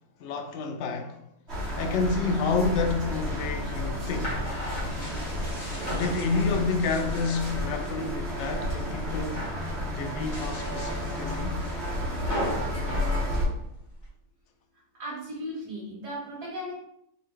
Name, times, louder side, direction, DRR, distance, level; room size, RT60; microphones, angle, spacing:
voice 1, 0.2-1.2 1.8-4.4 5.9-9.5 9.9-11.6, left 4 dB, 65° left, 0.8 m, -29 dB
sound 1, 1.5-13.4, left 1 dB, 45° right, 1.9 m, -31 dB
sound 2, 3.3-8.0 8.4-8.9 9.2-9.7 10.2-14.1, equal, 25° left, 1.8 m, -38 dB
voice 2, 15.0-16.7, equal, 85° right, 1.8 m, -36 dB
4.2 x 3.6 x 3.1 m
omnidirectional pair, 1.7 m